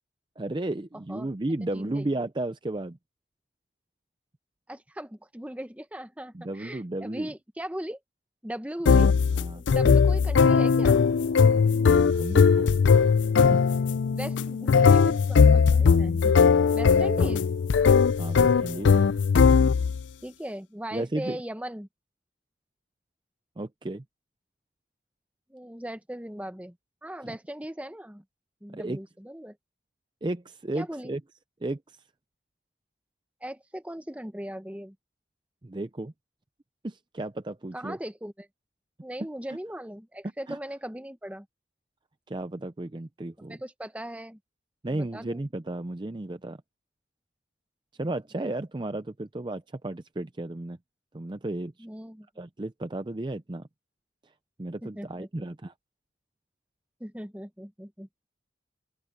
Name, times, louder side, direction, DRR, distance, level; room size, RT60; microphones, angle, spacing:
voice 1, 0.4-3.0 6.3-7.3 8.9-9.1 9.4-9.6 11.9-12.8 13.5-13.6 18.2-18.9 20.9-21.4 23.6-24.0 27.2-27.3 28.7-29.0 30.2-31.2 31.6-32.0 35.6-36.1 36.8-38.0 39.5-39.6 40.5-40.6 42.3-43.6 44.8-46.6 48.0-50.8 51.1-51.7 52.4-53.7 54.6-55.7, right 2 dB, 25° right, 0.5 m, -33 dB
voice 2, 1.6-2.1 4.7-8.0 8.4-9.1 9.5-11.0 14.1-16.3 16.7-17.4 20.2-21.9 25.5-26.8 27.0-28.2 28.6-29.6 30.7-31.1 33.4-35.0 37.7-38.5 39.0-41.5 43.4-44.4 44.9-45.4 48.0-48.1 51.8-52.3 54.8-55.5 57.0-58.1, right 1 dB, 5° right, 0.9 m, -38 dB
sound 1, 8.9-20.0, left 5 dB, 85° left, 0.4 m, -20 dB
open air
head